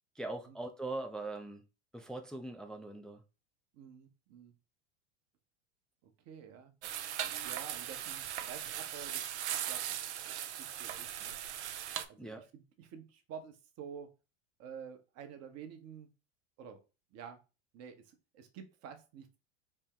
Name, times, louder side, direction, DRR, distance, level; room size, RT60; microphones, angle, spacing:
voice 1, 0.2-1.6 1.9-3.2 12.2-12.4, right 2 dB, ahead, 0.4 m, -41 dB
voice 2, 3.7-4.5 6.0-6.7 7.4-9.2 9.7-9.8 10.1-11.4 12.1-14.1 14.6-16.1 16.6-16.8 17.1-17.4 17.7-19.3, right 7 dB, 45° right, 1.0 m, -50 dB
sound 1, 6.8-12.0, right 10 dB, 80° right, 0.6 m, -39 dB
4.3 x 2.1 x 3.7 m
hypercardioid pair, 95°, 34 cm